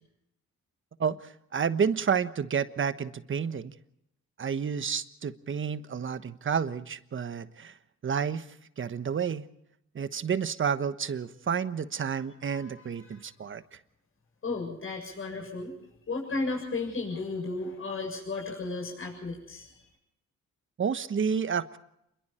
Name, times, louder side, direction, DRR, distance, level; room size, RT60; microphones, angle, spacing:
voice 1, 1.5-3.7 4.4-7.7 8.0-8.5 8.8-9.4 9.9-13.6 20.8-21.8, right 6 dB, 40° right, 12 dB, 1.3 m, -30 dB
voice 2, 14.4-15.7 16.1-19.8, left 3 dB, 45° left, 1 dB, 7.2 m, -34 dB
27.5 x 22.5 x 4.4 m, 0.77 s
cardioid pair, 90°, 30 cm